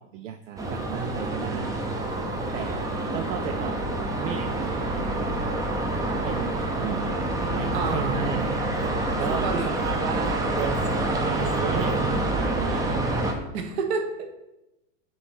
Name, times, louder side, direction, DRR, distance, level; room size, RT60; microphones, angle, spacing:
voice 1, 0.0-1.8 2.5-2.8 3.1-3.8 4.2-5.3 6.3-7.0 7.5-8.5 9.2-13.0, right 10 dB, 75° right, 9 dB, 0.5 m, -34 dB
sound 1, 0.6-13.3, right 1 dB, 10° right, 0.5 m, -27 dB
voice 2, 7.7-8.4 9.3-9.7 13.5-14.3, right 5 dB, 55° right, 5 dB, 1.2 m, -29 dB
8.0 x 3.2 x 4.2 m, 0.94 s
hypercardioid pair, 125°, 38 cm